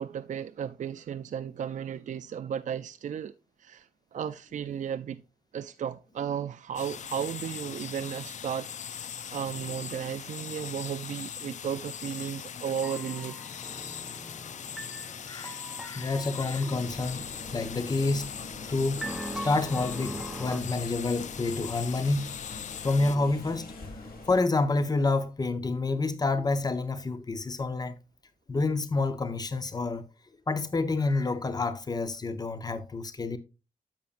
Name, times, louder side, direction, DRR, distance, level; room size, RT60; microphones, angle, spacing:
voice 1, 0.0-3.3 3.6-5.2 5.5-13.4, right 8 dB, 55° right, 0.4 m, -34 dB
sound 1, 6.8-23.2, left 8 dB, 50° left, 0.4 m, -40 dB
sound 2, 12.8-20.6, right 1 dB, 5° right, 0.6 m, -42 dB
voice 2, 15.8-18.3 18.7-22.4 22.8-27.9 28.5-30.1 30.5-33.4, left 3 dB, 25° left, 0.8 m, -28 dB
sound 3, 16.7-24.4, left 2 dB, 75° left, 2.1 m, -44 dB
10.5 x 7.1 x 2.5 m
wide cardioid pair, 110°, 15 cm